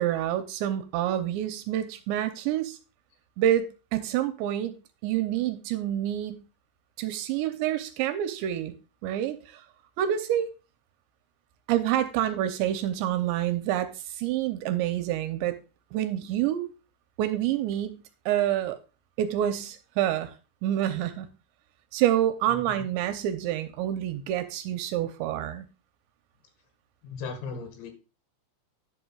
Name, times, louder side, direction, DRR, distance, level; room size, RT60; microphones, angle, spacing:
voice 1, 0.0-2.8 3.4-4.8 5.0-6.4 7.0-8.7 9.0-9.6 10.0-10.5 11.7-15.6 15.9-16.7 17.2-18.8 19.2-20.3 20.6-21.3 21.9-25.7, right 11 dB, 80° right, 2.8 m, -27 dB
voice 2, 27.0-27.9, left 5 dB, 70° left, 3.8 m, -37 dB
11.0 x 11.0 x 2.3 m
omnidirectional pair, 5.4 m